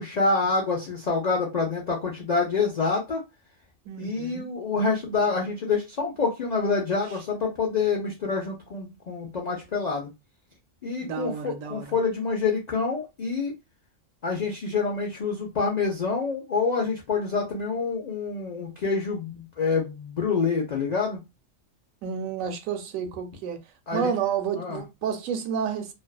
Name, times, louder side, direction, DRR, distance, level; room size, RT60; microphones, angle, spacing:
voice 1, 0.0-3.2 4.0-10.1 10.8-13.5 14.2-21.2 23.9-24.1 24.6-24.8, left 4 dB, 75° left, 0.3 m, -27 dB
voice 2, 3.9-4.5 11.0-12.0 22.0-23.6 23.9-25.9, right 7 dB, 85° right, 1.0 m, -30 dB
2.5 x 2.2 x 2.2 m
omnidirectional pair, 1.4 m